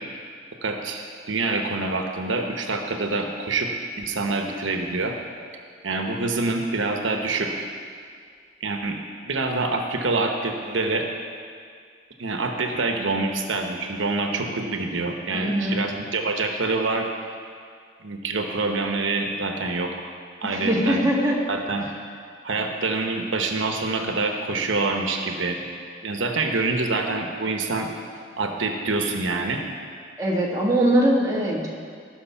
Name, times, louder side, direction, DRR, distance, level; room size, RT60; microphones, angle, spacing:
voice 1, 0.6-3.7 4.0-5.1 5.8-7.7 8.6-9.0 9.3-11.1 12.2-17.1 18.0-20.1 20.4-21.0 21.5-21.9 22.4-25.6 26.0-27.9 28.4-29.6, right 3 dB, 90° right, 3 dB, 0.9 m, -26 dB
voice 2, 15.3-15.8 20.4-21.4 22.5-22.6 30.2-31.7, right 1 dB, 15° right, -4 dB, 1.5 m, -22 dB
14.5 x 6.3 x 5.7 m, 2.1 s
head